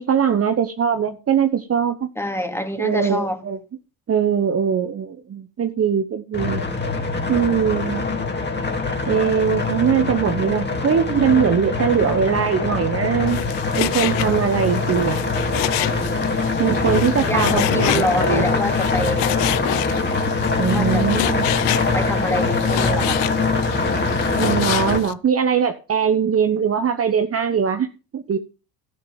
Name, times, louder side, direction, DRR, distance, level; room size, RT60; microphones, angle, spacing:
voice 1, 0.0-2.1 2.8-3.6 4.1-6.6 7.3-8.0 9.1-13.4 13.8-15.2 16.6-18.5 20.6-21.5 24.4-27.9 28.1-28.4, right 7 dB, 30° right, 1.2 m, -21 dB
voice 2, 2.2-3.4 17.1-19.4 20.7-21.1 21.9-23.3, left 1 dB, 5° left, 2.6 m, -26 dB
sound 1, 6.3-25.0, left 3 dB, 20° left, 2.9 m, -23 dB
Frying (food), 13.3-25.1, left 17 dB, 65° left, 0.9 m, -29 dB
13.0 x 7.0 x 7.3 m
supercardioid pair, 80°, 47 cm